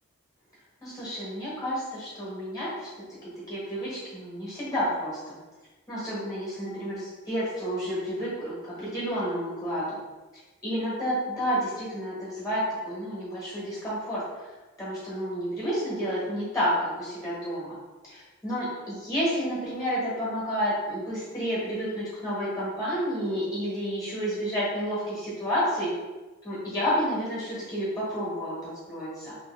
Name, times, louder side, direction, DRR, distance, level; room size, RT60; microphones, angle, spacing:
voice 1, 0.8-2.9 3.5-5.4 5.9-10.0 10.6-14.2 14.8-17.8 18.0-25.9 26.4-29.3, equal, 15° left, -7 dB, 1.3 m, -30 dB
2.9 x 2.8 x 3.3 m, 1.2 s
head